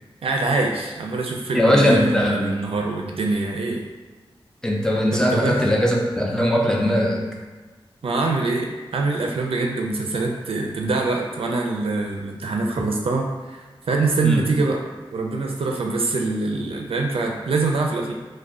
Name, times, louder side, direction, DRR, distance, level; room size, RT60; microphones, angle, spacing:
voice 1, 0.2-3.8 5.1-5.7 8.0-14.8 15.1-18.1, right 3 dB, 70° right, 1 dB, 0.4 m, -24 dB
voice 2, 1.5-2.6 4.6-7.2 14.2-14.4, equal, 5° left, -1 dB, 0.4 m, -20 dB
2.4 x 2.1 x 3.3 m, 1.3 s
wide cardioid pair, 105°, 10 cm